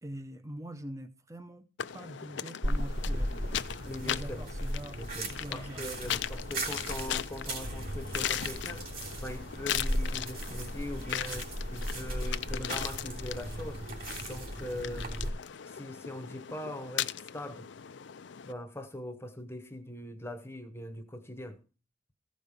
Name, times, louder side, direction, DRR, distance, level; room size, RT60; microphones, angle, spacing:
voice 1, 0.0-1.7 1.9-3.6 4.0-5.0 5.3-6.2 14.8-15.0, right 1 dB, 15° right, 0.7 m, -44 dB
sound 1, 1.8-18.5, left 10 dB, 70° left, 0.5 m, -38 dB
sound 2, 2.6-15.3, equal, 45° right, 3.3 m, -36 dB
voice 2, 3.8-4.4 4.9-8.9 9.2-13.8 14.2-15.2 15.7-17.7 18.4-21.6, left 1 dB, 15° left, 0.9 m, -41 dB
15.0 x 5.2 x 6.8 m
head